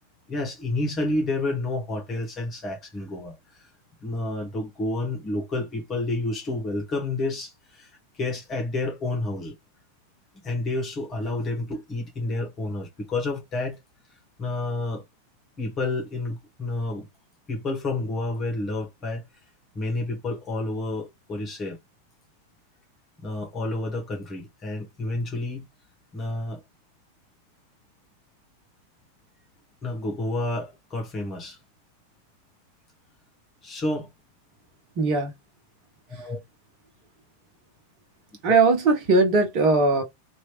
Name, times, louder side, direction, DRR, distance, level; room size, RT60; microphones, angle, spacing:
voice 1, 0.3-3.3 4.0-7.9 8.2-9.5 10.4-13.8 14.4-15.0 15.6-17.1 17.5-19.2 19.7-21.8 23.2-25.6 26.1-26.6 29.8-31.6 33.6-34.1 36.1-36.4 38.5-38.6, left 2 dB, 25° left, 1.4 m, -29 dB
voice 2, 35.0-35.3 36.1-36.3 38.4-40.0, right 3 dB, 40° right, 1.1 m, -20 dB
3.0 x 2.7 x 3.0 m
figure-of-eight pair, 90°, 0 cm